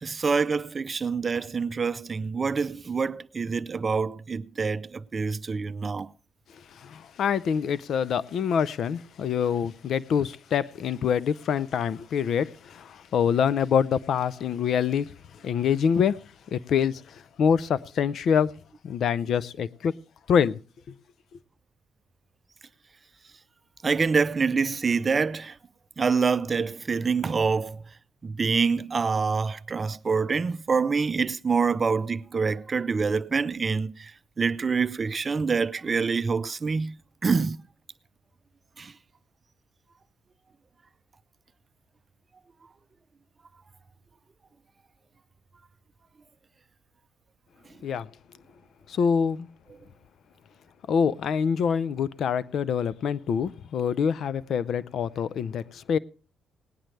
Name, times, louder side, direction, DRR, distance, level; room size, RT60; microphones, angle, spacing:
voice 1, 0.0-6.1 23.8-25.6 26.0-27.8 28.2-34.1 34.4-36.9 37.2-37.6 38.8-38.9, right 5 dB, 35° right, 0.5 m, -26 dB
voice 2, 6.8-15.1 15.4-16.2 16.5-17.0 17.4-18.5 18.8-19.9 20.3-20.6 47.8-48.1 49.0-49.5 50.9-56.0, left 7 dB, 65° left, 0.5 m, -25 dB
18.5 x 10.5 x 3.3 m
cardioid pair, 90°, 0 cm